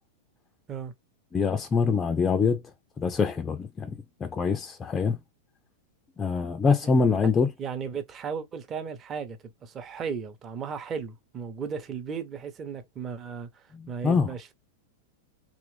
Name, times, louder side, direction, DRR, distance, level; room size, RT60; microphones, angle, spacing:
voice 1, 1.3-2.6 3.0-5.2 6.2-7.5 13.7-14.3, left 5 dB, 20° left, 0.4 m, -25 dB
voice 2, 7.6-14.5, right 6 dB, 30° right, 0.7 m, -35 dB
3.0 x 2.4 x 3.2 m
figure-of-eight pair, 100°, 0 cm